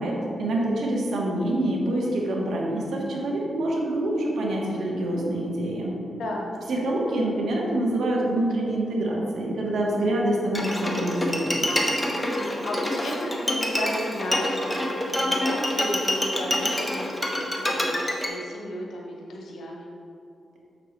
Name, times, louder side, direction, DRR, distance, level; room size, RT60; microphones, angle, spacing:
voice 1, 0.0-6.0 6.7-11.8, right 1 dB, 80° right, -2 dB, 1.4 m, -26 dB
voice 2, 6.1-6.5 12.1-19.9, left 1 dB, 80° left, -1 dB, 1.0 m, -34 dB
Bowed string instrument, 10.5-18.3, left 1 dB, 10° left, 1.1 m, -26 dB
6.9 x 6.7 x 3.2 m, 2.7 s
cardioid pair, 90°, 0 cm